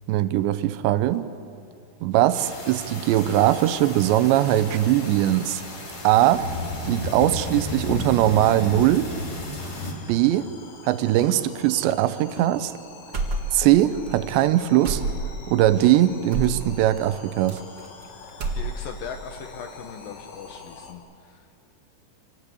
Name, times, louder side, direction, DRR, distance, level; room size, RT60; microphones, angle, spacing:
voice 1, 0.1-1.3 2.0-5.6 6.0-6.5 6.9-9.1 10.1-10.5 10.8-12.7 13.5-15.0 15.5-17.6, right 13 dB, 85° right, 13 dB, 3.1 m, -20 dB
sound 1, 2.3-20.9, left 4 dB, 50° left, 2.6 m, -46 dB
sound 2, 2.3-9.9, left 1 dB, 25° left, 2.9 m, -33 dB
sound 3, 13.1-13.8 14.0-14.2 14.8-15.5 16.3-16.6 17.5-18.0 18.3-19.0, right 2 dB, 45° right, 1.5 m, -28 dB
voice 2, 18.6-21.7, left 7 dB, 70° left, 6 dB, 2.3 m, -39 dB
27.0 x 18.5 x 8.4 m, 2.4 s
omnidirectional pair, 5.0 m